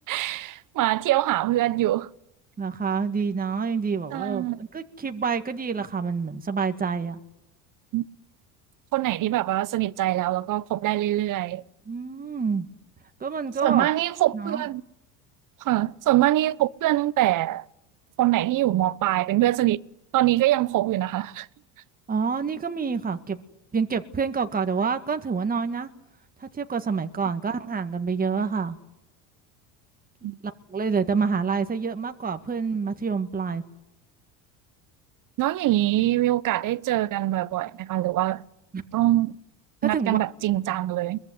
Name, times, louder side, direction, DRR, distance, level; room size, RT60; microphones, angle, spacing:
voice 1, 0.1-2.1 4.1-4.6 7.9-8.0 8.9-11.6 13.6-14.8 15.6-17.6 18.2-19.8 20.1-21.5 30.2-30.4 35.4-38.4 38.9-39.4 39.8-41.2, right 15 dB, 45° right, 1.0 m, -23 dB
voice 2, 2.6-7.2 11.9-12.7 13.2-13.9 14.3-14.6 22.1-23.4 23.7-25.9 26.4-28.8 30.2-33.6 38.7-38.8 39.8-40.2, right 5 dB, 20° right, 1.8 m, -27 dB
23.0 x 21.0 x 9.6 m
supercardioid pair, 100°, 42 cm